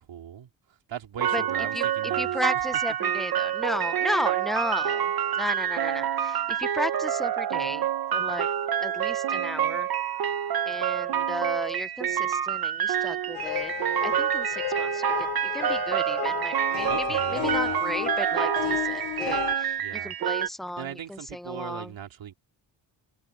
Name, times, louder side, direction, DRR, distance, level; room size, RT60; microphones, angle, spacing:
voice 1, 0.0-2.4 16.9-17.8 19.8-20.1 20.8-22.3, right 9 dB, 75° right, 3.3 m, -39 dB
sound 1, 1.2-20.5, right 9 dB, 50° right, 1.1 m, -27 dB
voice 2, 2.2-8.5 8.8-9.9 10.7-13.7 14.0-21.9, left 1 dB, ahead, 0.6 m, -34 dB
sound 2, 13.3-19.6, left 15 dB, 80° left, 0.8 m, -33 dB
cardioid pair, 120°, 46 cm